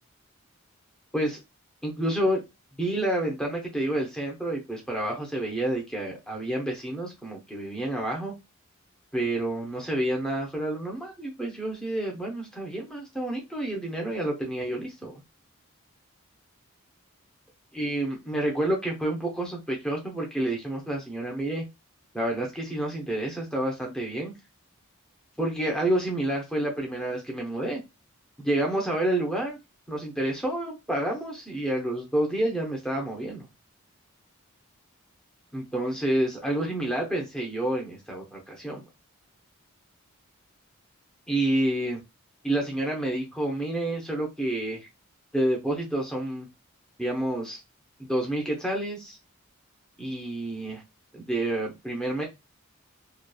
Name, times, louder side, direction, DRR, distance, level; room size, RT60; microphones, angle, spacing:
voice 1, 1.8-2.4 2.8-8.3 9.1-15.2 17.7-21.6 22.1-24.3 25.4-27.8 28.4-29.6 29.9-33.5 35.5-38.9 41.3-42.0 42.4-44.9 45.3-46.5 47.0-47.6 48.0-49.2 50.0-50.8 51.1-52.2, right 1 dB, 5° left, -1 dB, 0.6 m, -29 dB
2.8 x 2.2 x 2.3 m, 0.23 s
head